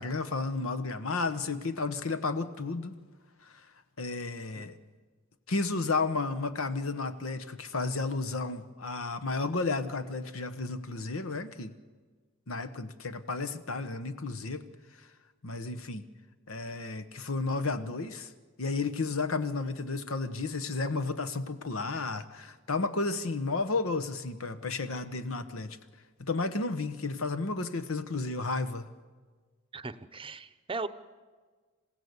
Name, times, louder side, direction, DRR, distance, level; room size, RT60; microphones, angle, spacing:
voice 1, 0.0-2.9 3.4-3.6 4.0-4.8 5.5-11.7 12.5-14.7 15.4-16.1 16.5-18.3 18.6-25.8 26.2-28.9, left 3 dB, 80° left, 11 dB, 1.2 m, -32 dB
voice 2, 29.7-30.9, right 3 dB, 25° right, 13 dB, 0.8 m, -38 dB
27.5 x 16.0 x 8.2 m, 1.4 s
head